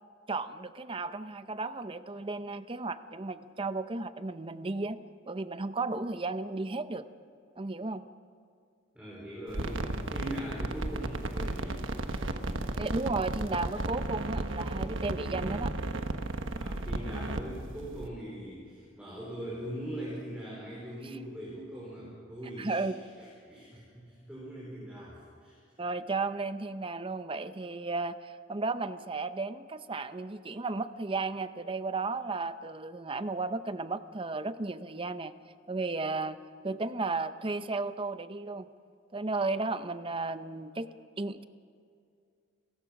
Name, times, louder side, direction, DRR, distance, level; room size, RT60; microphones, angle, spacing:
voice 1, 0.3-5.0 5.3-7.0 7.6-8.0 12.8-15.7 22.6-22.9 25.8-35.3 35.7-36.4 36.6-38.7 39.1-40.9 41.2-41.4, right 3 dB, 25° right, 12 dB, 0.7 m, -34 dB
voice 2, 8.9-11.9 16.5-22.9 23.2-25.6, equal, 5° right, -6 dB, 4.9 m, -41 dB
sound 1, 9.5-18.1, right 2 dB, 80° right, 1.3 m, -34 dB
29.5 x 15.5 x 6.0 m, 2.4 s
head